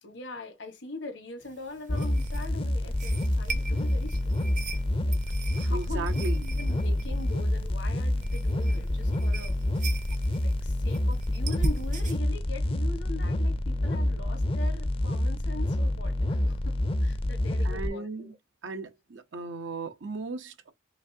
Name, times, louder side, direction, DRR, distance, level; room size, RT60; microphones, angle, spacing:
voice 1, 0.0-4.5 5.0-5.2 5.6-9.5 10.4-18.3, left 2 dB, 80° left, 1.2 m, -42 dB
sound 1, 1.4-12.2, right 2 dB, 45° right, 0.6 m, -38 dB
sound 2, 1.9-17.9, left 1 dB, 30° left, 0.5 m, -27 dB
voice 2, 5.7-6.4 17.6-18.3 18.6-20.7, right 3 dB, 85° right, 0.8 m, -36 dB
5.1 x 2.6 x 2.7 m
head